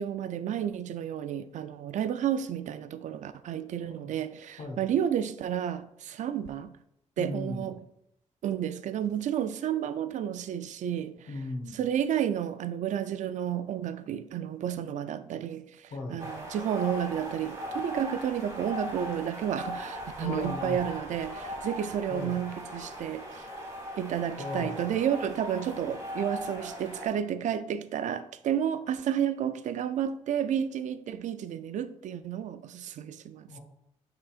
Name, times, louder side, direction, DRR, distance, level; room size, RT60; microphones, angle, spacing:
voice 1, 0.0-6.7 7.2-7.8 8.4-11.2 11.7-23.4 24.0-33.5, right 9 dB, 75° right, 0.4 m, -31 dB
voice 2, 3.8-4.1 4.6-4.8 7.2-7.7 11.3-11.8 15.9-16.3 20.2-20.8 22.1-22.4 24.4-25.0 33.5-33.6, left 2 dB, 70° left, 1.3 m, -37 dB
sound 1, 16.2-27.1, equal, 25° right, 2.4 m, -39 dB
10.0 x 3.9 x 2.4 m
cardioid pair, 115°, 13 cm